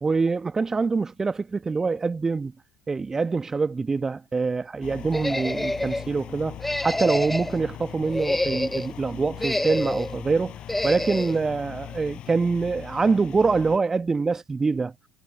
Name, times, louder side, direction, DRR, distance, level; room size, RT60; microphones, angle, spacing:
voice 1, 0.0-2.5 2.9-10.6 10.8-14.9, right 4 dB, 20° right, 1.7 m, -25 dB
sound 1, 4.8-13.8, left 11 dB, 40° left, 5.7 m, -40 dB
sound 2, 5.1-6.0 6.6-7.6 8.0-8.9 9.4-10.1 10.7-11.4, left 1 dB, 5° left, 1.0 m, -27 dB
figure-of-eight pair, 65°, 2 cm